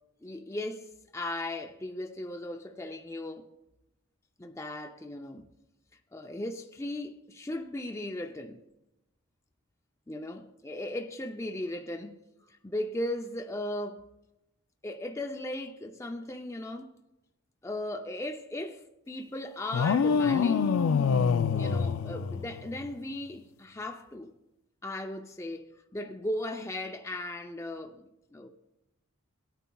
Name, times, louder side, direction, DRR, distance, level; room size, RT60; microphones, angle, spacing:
voice 1, 0.2-3.5 4.4-5.4 6.1-8.6 10.1-12.2 12.5-14.1 14.8-16.9 17.6-20.7 21.5-24.3 24.8-28.5, left 1 dB, 15° left, 0.4 m, -37 dB
sound 1, 19.7-22.9, left 6 dB, 85° left, 0.4 m, -26 dB
18.0 x 9.1 x 2.3 m
head